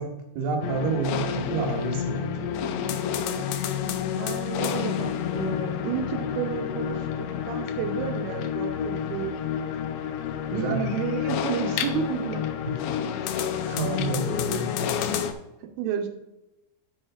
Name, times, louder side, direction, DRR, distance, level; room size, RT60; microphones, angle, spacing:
voice 1, 0.0-2.5 10.5-10.8 13.2-14.9, right 4 dB, 65° right, 2 dB, 3.0 m, -30 dB
sound 1, 0.6-15.3, left 8 dB, 80° left, 2.8 m, -29 dB
voice 2, 4.2-7.1 7.5-9.4 10.5-12.5 15.8-16.1, right 8 dB, 90° right, 5 dB, 3.4 m, -31 dB
11.0 x 7.7 x 2.4 m, 0.92 s
omnidirectional pair, 5.5 m